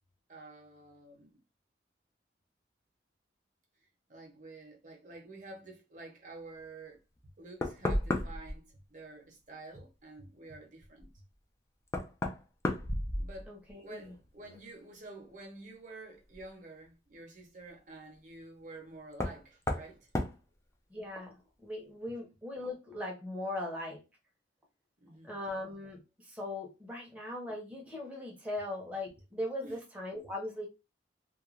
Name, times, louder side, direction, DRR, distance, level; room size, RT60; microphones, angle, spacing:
voice 1, 0.3-1.4 4.1-7.0 7.4-11.1 13.2-13.5 13.8-20.1 25.0-25.4 29.6-29.8, right 2 dB, 45° right, 0.8 m, -49 dB
Knock, 7.2-7.3 7.6-8.6 11.0-11.1 11.9-13.7 14.0-14.6 16.3-16.4 19.1-19.4 19.7-19.9 20.1-20.4, left 1 dB, 15° left, 0.4 m, -33 dB
voice 2, 13.5-14.1 20.9-24.0 25.2-30.7, left 1 dB, 10° right, 0.7 m, -39 dB
2.4 x 2.2 x 3.1 m
head